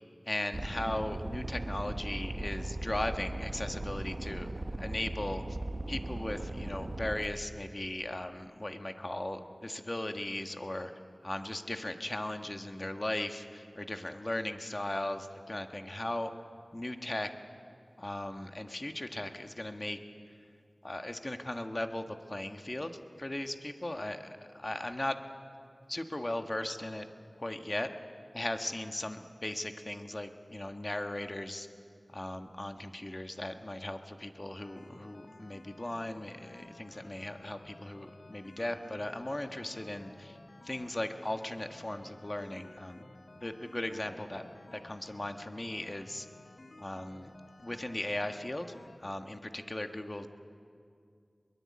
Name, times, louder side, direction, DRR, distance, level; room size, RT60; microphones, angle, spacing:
voice 1, 0.3-4.5 4.8-5.4 5.9-10.9 11.2-16.3 16.7-17.3 18.0-20.0 20.8-25.2 25.9-27.1 27.4-27.9 28.3-31.7 32.1-40.4 40.6-43.1 43.4-44.5 44.7-46.3 46.8-47.3 47.6-48.7 49.0-50.3, left 1 dB, 30° left, 6 dB, 1.5 m, -37 dB
sound 1, 0.5-7.3, right 1 dB, 45° right, 1.1 m, -38 dB
sound 2, 34.6-49.0, left 2 dB, 65° left, 1.2 m, -54 dB
22.0 x 22.0 x 8.6 m, 2.3 s
wide cardioid pair, 65°, 0 cm